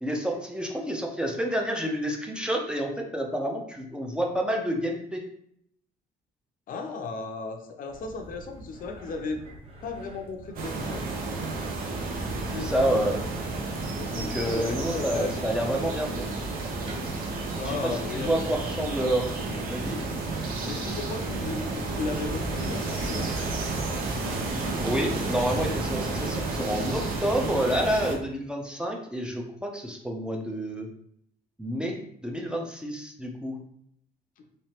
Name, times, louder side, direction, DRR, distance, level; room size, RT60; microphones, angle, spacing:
voice 1, 0.0-5.2 12.5-13.2 14.1-16.3 17.8-19.3 19.7-20.0 24.8-30.9 31.6-33.6, equal, 5° right, 1 dB, 0.6 m, -29 dB
voice 2, 6.7-9.4 9.8-11.0 13.9-15.5 17.5-18.3 20.6-23.3, left 4 dB, 55° left, 4 dB, 0.6 m, -35 dB
sound 1, 7.9-25.0, right 1 dB, 35° right, 1.0 m, -46 dB
sound 2, 10.6-28.2, right 3 dB, 60° right, 0.8 m, -31 dB
3.2 x 3.1 x 2.9 m, 0.68 s
cardioid pair, 110°, 17 cm